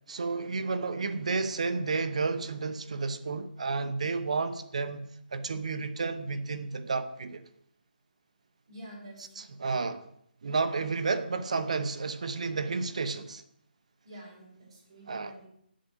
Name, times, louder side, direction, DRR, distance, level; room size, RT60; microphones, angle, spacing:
voice 1, 0.1-7.4 9.4-10.1 10.4-13.4 15.1-15.3, right 4 dB, 40° right, 0.8 m, -31 dB
voice 2, 8.7-9.7 14.0-15.5, equal, 25° right, 6.1 m, -48 dB
8.6 x 7.5 x 8.4 m
hypercardioid pair, 175°, 5 cm